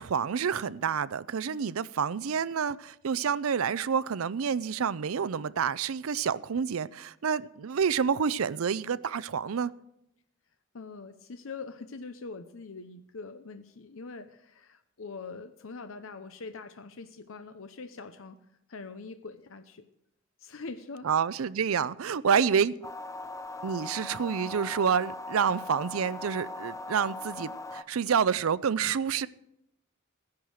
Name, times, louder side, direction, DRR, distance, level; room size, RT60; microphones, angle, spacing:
voice 1, 0.0-9.7 21.0-22.7 23.6-29.3, right 7 dB, 80° right, 0.5 m, -28 dB
voice 2, 10.7-18.4 18.7-19.9 20.4-21.1 22.3-22.6, left 4 dB, 70° left, 0.8 m, -43 dB
sound 1, 22.8-27.8, left 2 dB, 15° left, 0.7 m, -40 dB
15.0 x 10.5 x 6.4 m
head